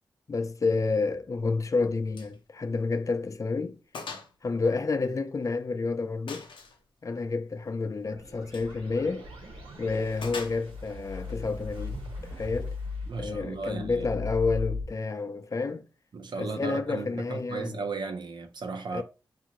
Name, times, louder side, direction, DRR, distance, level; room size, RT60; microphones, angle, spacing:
voice 1, 0.3-3.8 4.4-6.5 7.0-9.3 9.8-12.0 12.3-12.8 13.2-15.8 16.4-17.8 18.9-19.0, left 4 dB, 40° left, 0.4 m, -29 dB
Gunshot gunfire, 2.1-2.4 2.7-2.8 3.3-3.4 3.9-4.3 4.6-5.6 6.3-6.8 8.4-8.7 10.2-10.9, left 4 dB, 75° left, 0.7 m, -41 dB
sound 1, 8.0-14.8, left 3 dB, 85° right, 1.0 m, -38 dB
voice 2, 13.1-14.2 16.1-19.0, right 4 dB, 60° right, 0.6 m, -36 dB
2.6 x 2.4 x 2.9 m
cardioid pair, 45°, 9 cm